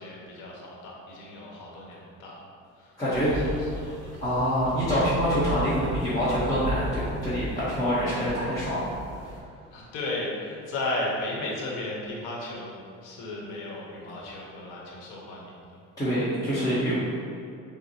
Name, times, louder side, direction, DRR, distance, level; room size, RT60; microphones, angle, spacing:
voice 1, 0.0-2.4 2.8-2.9 3.3-4.0 9.7-12.7 13.0-15.5 16.6-16.7, left 2 dB, 80° left, -3 dB, 1.1 m, -35 dB
voice 2, 3.0-3.3 4.2-8.8 9.2-9.3 16.0-16.9, equal, 10° left, -12 dB, 1.0 m, -26 dB
sound 1, 3.1-9.4, right 1 dB, 50° right, 0.8 m, -36 dB
6.3 x 2.1 x 2.8 m, 2.5 s
cardioid pair, 120°, 31 cm